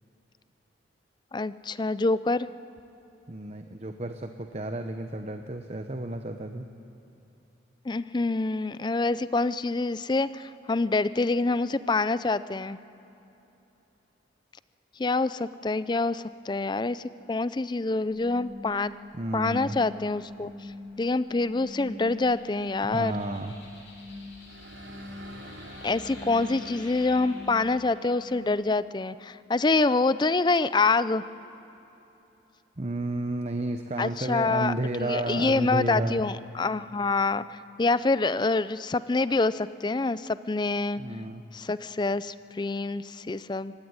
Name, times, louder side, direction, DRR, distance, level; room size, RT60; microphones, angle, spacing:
voice 1, 1.3-2.5 7.9-12.8 15.0-17.0 17.3-18.9 19.3-20.5 21.0-23.2 25.8-31.2 34.0-34.7 35.0-41.0 41.5-43.7, left 3 dB, 25° left, 16 dB, 0.4 m, -26 dB
voice 2, 3.3-6.6 19.1-19.8 22.9-23.6 32.8-36.2 41.0-41.4, right 2 dB, 35° right, 6 dB, 0.9 m, -32 dB
sound 1, 18.1-28.5, left 2 dB, 75° left, 7.5 m, -44 dB
sound 2, 24.3-28.1, right 2 dB, 80° right, 3.2 m, -47 dB
24.5 x 16.5 x 9.7 m, 3.0 s
head